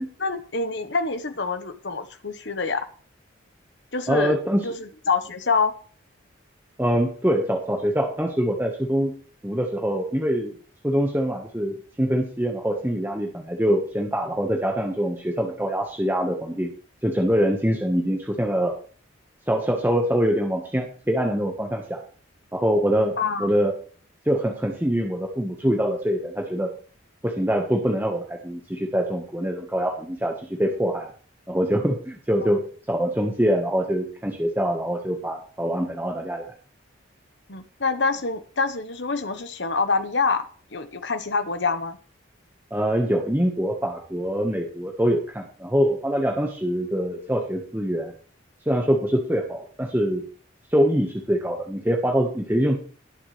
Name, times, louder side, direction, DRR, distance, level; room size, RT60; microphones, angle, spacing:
voice 1, 0.2-2.9 3.9-4.4 4.6-5.7 23.2-23.5 37.5-40.4 40.7-42.0, left 4 dB, 60° left, 9 dB, 1.1 m, -26 dB
voice 2, 4.1-4.6 6.8-9.1 9.4-10.6 10.8-16.7 17.0-18.7 19.5-22.0 22.5-23.1 23.4-23.7 24.2-26.7 27.2-31.1 31.5-32.6 32.9-36.4 42.7-48.1 48.6-50.2 50.7-52.8, equal, 10° right, 0 dB, 1.3 m, -24 dB
19.5 x 7.3 x 3.3 m, 0.42 s
head